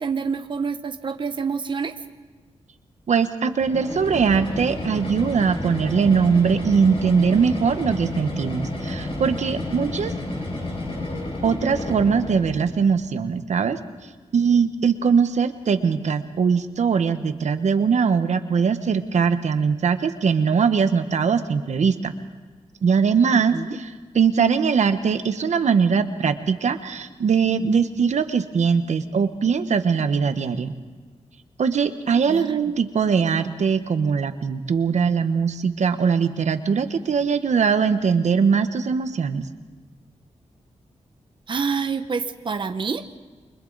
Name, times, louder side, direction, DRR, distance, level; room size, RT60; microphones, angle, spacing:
voice 1, 0.0-1.9 23.3-23.8 32.3-32.6 41.5-43.0, right 5 dB, 40° right, 8 dB, 0.9 m, -27 dB
voice 2, 3.1-10.1 11.4-13.8 14.3-22.1 22.8-30.7 31.6-39.5, right 6 dB, 75° right, 9 dB, 1.1 m, -21 dB
sound 1, 3.6-12.7, left 1 dB, 50° left, 5.5 m, -30 dB
29.0 x 24.0 x 4.0 m, 1.4 s
wide cardioid pair, 105°, 12 cm